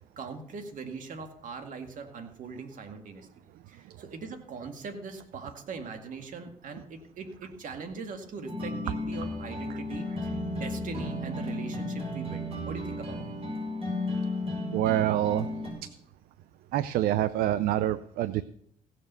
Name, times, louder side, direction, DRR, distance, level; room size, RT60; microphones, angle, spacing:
voice 1, 0.0-3.3 3.7-13.2, right 4 dB, 60° right, 6 dB, 2.1 m, -41 dB
sound 1, 8.5-15.7, left 1 dB, 40° right, 5.5 m, -34 dB
voice 2, 14.7-15.5 16.7-18.4, right 13 dB, 85° right, 15 dB, 0.5 m, -26 dB
16.0 x 6.8 x 6.9 m, 0.67 s
cardioid pair, 90°, 15 cm